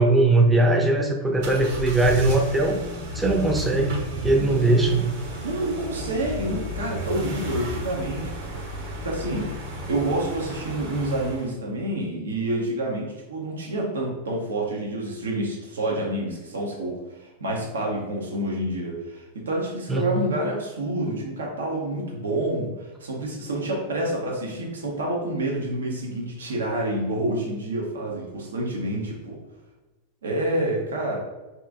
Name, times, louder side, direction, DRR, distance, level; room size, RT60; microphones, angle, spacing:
voice 1, 0.0-2.8 3.1-5.1 19.9-20.2, right 2 dB, 10° right, 1 dB, 0.5 m, -20 dB
sound 1, 1.4-11.5, equal, 65° right, 1.0 m, -33 dB
voice 2, 5.4-8.3 8.8-9.5 9.9-29.4 30.2-31.2, right 1 dB, 85° right, -2 dB, 0.8 m, -28 dB
2.9 x 2.6 x 3.5 m, 1.1 s
hypercardioid pair, 110°, 0 cm